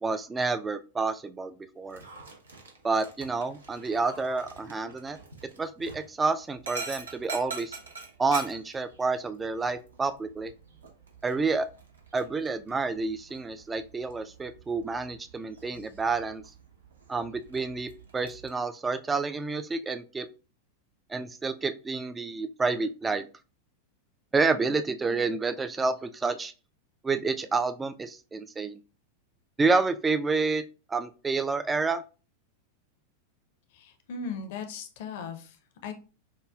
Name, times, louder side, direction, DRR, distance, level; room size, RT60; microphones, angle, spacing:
voice 1, 0.0-2.0 2.8-5.2 5.6-7.8 8.2-10.5 11.2-11.7 12.1-16.4 17.1-20.3 21.1-23.3 24.3-26.5 27.0-28.8 29.6-30.6 30.9-32.0, right 4 dB, 15° right, 10 dB, 0.3 m, -29 dB
Dog, 1.9-18.5, right 4 dB, 75° right, 0.8 m, -45 dB
voice 2, 33.7-35.6 35.8-35.9, left 5 dB, 50° left, 6 dB, 0.6 m, -37 dB
4.8 x 2.3 x 2.3 m, 0.33 s
figure-of-eight pair, 90°, 0 cm